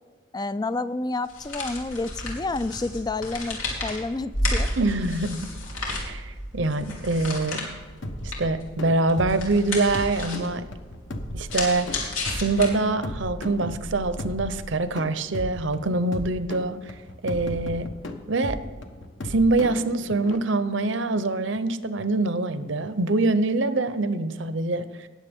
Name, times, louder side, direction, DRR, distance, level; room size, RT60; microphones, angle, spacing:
voice 1, 0.3-4.7, left 3 dB, 20° left, 15 dB, 0.3 m, -29 dB
sound 1, 1.2-13.1, left 2 dB, 90° left, 3.4 m, -32 dB
voice 2, 4.8-5.5 6.0-7.6 8.4-10.6 11.3-16.9 17.2-17.9 18.3-18.6 19.2-25.1, right 2 dB, 65° right, 12 dB, 0.8 m, -25 dB
sound 2, 8.0-20.4, left 1 dB, 65° left, 1.2 m, -36 dB
19.5 x 7.5 x 3.6 m, 1.4 s
head